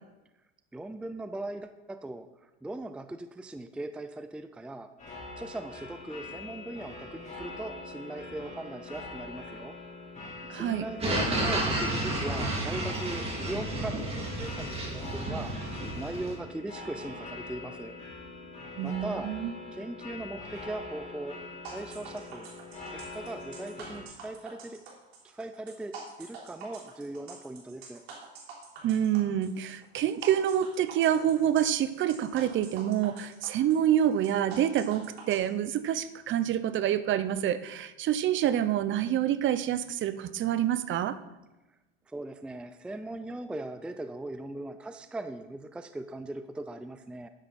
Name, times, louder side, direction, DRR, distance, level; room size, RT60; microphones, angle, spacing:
voice 1, 0.7-2.3 2.6-4.9 5.4-9.8 10.5-15.5 16.0-18.0 18.8-19.3 19.7-21.4 21.7-22.5 22.9-24.8 25.2-28.0 42.1-47.3, right 2 dB, 5° right, 9 dB, 0.5 m, -39 dB
sound 1, 5.0-24.0, left 2 dB, 25° left, 3.3 m, -43 dB
voice 2, 10.5-10.9 18.8-19.5 28.8-41.2, right 10 dB, 40° right, 14 dB, 0.7 m, -27 dB
sound 2, 11.0-16.4, right 1 dB, 20° right, 3.0 m, -31 dB
sound 3, 21.6-35.4, right 5 dB, 85° right, 3.4 m, -46 dB
11.5 x 10.0 x 4.3 m, 1.0 s
supercardioid pair, 105°, 31 cm